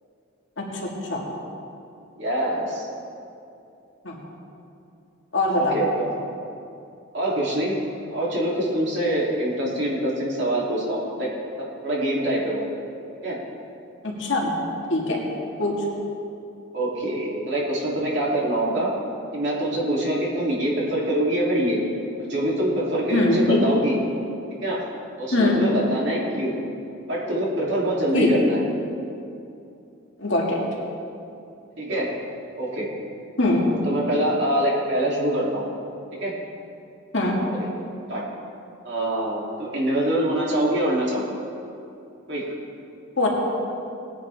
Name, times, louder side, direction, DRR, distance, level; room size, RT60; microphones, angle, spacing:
voice 1, 2.1-2.9 5.6-6.1 7.1-7.8 8.1-11.3 11.6-12.7 13.2-13.4 15.6-15.7 16.7-18.9 19.3-21.8 22.2-24.0 24.6-24.8 25.2-26.6 27.1-28.6 31.8-32.1 32.6-32.9 33.4-35.7 36.2-36.3 38.1-38.2 38.8-41.4 42.3-42.6, right 1 dB, 55° right, -5 dB, 3.2 m, -25 dB
voice 2, 5.3-5.8 14.0-14.5 14.9-15.2 15.6-15.7 23.1-23.6 25.3-25.6 28.1-28.3 30.2-30.6 33.4-33.6 37.1-37.4 43.2-43.3, left 2 dB, 60° left, -2 dB, 2.1 m, -22 dB
19.5 x 10.0 x 3.6 m, 2.6 s
head